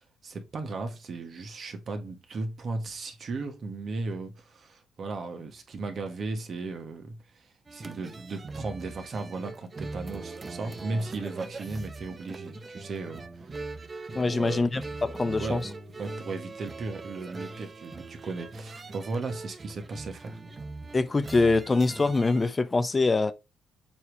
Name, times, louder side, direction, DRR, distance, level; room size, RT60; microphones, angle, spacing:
voice 1, 0.2-13.7 14.2-14.7 15.4-15.6 16.0-20.4, right 3 dB, 50° right, 1.7 m, -36 dB
sound 1, 7.7-22.5, right 3 dB, 30° right, 0.8 m, -41 dB
voice 2, 14.1-15.6 20.9-23.3, left 3 dB, 25° left, 0.6 m, -24 dB
7.2 x 3.1 x 4.8 m
cardioid pair, 90°, 0 cm